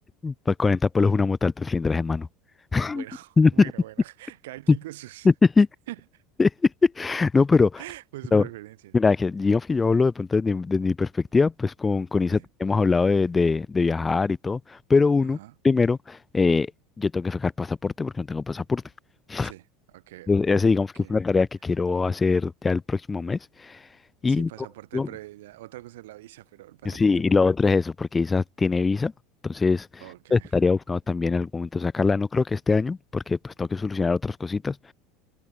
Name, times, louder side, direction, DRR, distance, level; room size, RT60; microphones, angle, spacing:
voice 1, 0.2-2.3 2.7-3.0 3.4-3.5 4.7-4.8 5.2-5.7 6.4-7.8 8.3-8.4 8.9-15.4 15.6-16.7 17.0-18.8 19.3-19.5 20.3-23.8 24.2-24.5 24.9-25.1 26.8-29.1 29.4-29.9 30.3-34.9, left 4 dB, 20° left, 0.8 m, -22 dB
voice 2, 2.9-5.3 5.9-6.2 7.8-9.0 12.3-12.5 15.2-15.5 19.3-20.3 21.0-21.1 24.3-27.5 30.0-30.5, right 17 dB, 75° right, 6.0 m, -43 dB
hypercardioid pair, 85°, 0 cm